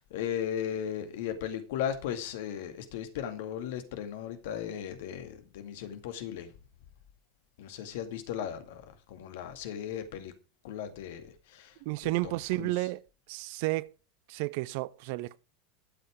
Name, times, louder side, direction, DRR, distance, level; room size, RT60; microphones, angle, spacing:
voice 1, 0.0-6.5 7.6-10.3 10.6-11.8 12.0-12.7, left 9 dB, 60° left, 2.1 m, -37 dB
voice 2, 11.8-13.0 13.3-13.9 14.3-15.4, right 20 dB, 55° right, 0.6 m, -32 dB
12.0 x 7.8 x 5.0 m
figure-of-eight pair, 80°, 0 cm